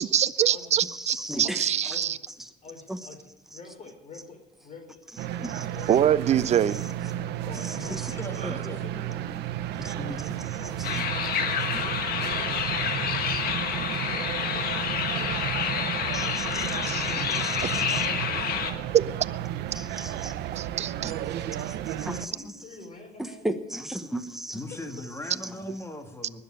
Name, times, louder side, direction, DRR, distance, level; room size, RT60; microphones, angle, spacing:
voice 1, 0.0-2.2 5.9-6.8 16.8-17.1 18.9-19.0 20.6-21.1, right 10 dB, 40° right, 15 dB, 0.6 m, -24 dB
voice 2, 0.8-2.0 2.9-3.0 5.4-5.7 6.7-6.8 7.6-8.1 9.7-10.4 10.9-11.0 13.7-13.8 16.1-18.1 19.7-20.3 21.0-21.1 21.6-22.3 23.2-24.6 25.4-25.5, right 1 dB, ahead, 6 dB, 1.2 m, -36 dB
voice 3, 1.4-2.2 2.6-5.0 5.7-5.9 7.4-9.3 10.4-11.8 12.2-12.5 14.4-15.1 17.1-19.2 20.6-20.8 22.1-23.5, left 3 dB, 40° left, 4 dB, 4.3 m, -47 dB
sound 1, 5.2-22.3, right 11 dB, 80° right, 0.9 m, -33 dB
voice 4, 8.2-8.8 24.5-26.4, left 1 dB, 15° left, 5 dB, 2.0 m, -38 dB
sound 2, 10.8-18.7, left 7 dB, 60° left, 1.7 m, -29 dB
19.5 x 7.0 x 10.0 m, 0.99 s
cardioid pair, 110°, 17 cm